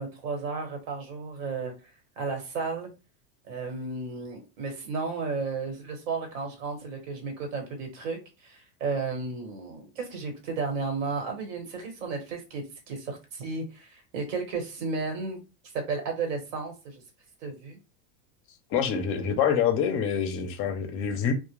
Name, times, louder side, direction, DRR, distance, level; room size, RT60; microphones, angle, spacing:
voice 1, 0.0-1.7 2.2-2.9 3.5-8.2 8.4-15.4 15.7-17.0 17.4-17.8, right 4 dB, 75° right, 1.2 m, -33 dB
voice 2, 18.7-21.3, left 7 dB, 35° left, 0.5 m, -26 dB
2.1 x 2.1 x 3.0 m
supercardioid pair, 140°, 39 cm